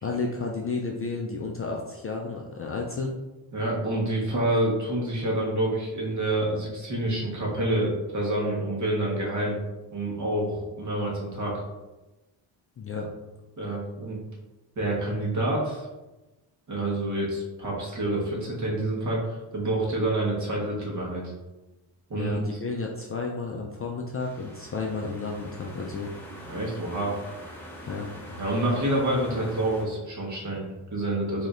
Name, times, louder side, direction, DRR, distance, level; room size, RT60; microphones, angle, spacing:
voice 1, 0.0-3.2 12.8-13.1 22.1-26.1 27.9-28.1, left 4 dB, 30° left, 0 dB, 0.4 m, -32 dB
voice 2, 3.5-9.6 9.9-11.6 13.6-14.2 14.8-15.9 16.7-21.3 22.1-22.4 26.5-27.2 28.4-31.5, right 1 dB, 40° right, -3 dB, 1.3 m, -27 dB
sound 1, 24.2-29.8, equal, 5° left, 0.9 m, -43 dB
4.9 x 2.8 x 2.5 m, 1.1 s
cardioid pair, 105°, 45 cm